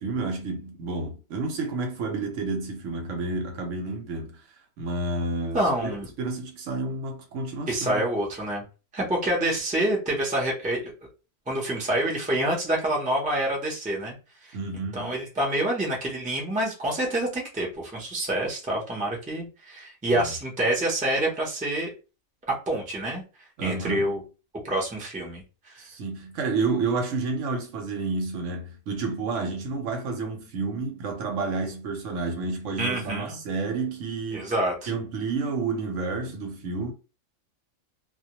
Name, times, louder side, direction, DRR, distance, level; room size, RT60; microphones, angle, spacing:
voice 1, 0.0-4.4 4.8-5.9 6.2-8.1 14.5-15.1 20.1-20.3 23.6-24.2 25.8-34.5 34.9-36.9, right 3 dB, 75° right, 0.9 m, -30 dB
voice 2, 5.5-6.1 7.7-8.6 8.9-10.9 11.5-14.2 14.4-14.6 14.9-21.9 22.5-23.2 23.6-24.2 24.6-25.8 32.8-33.4 34.3-34.9, right 1 dB, 10° right, 0.4 m, -27 dB
2.2 x 2.1 x 2.8 m
omnidirectional pair, 1.4 m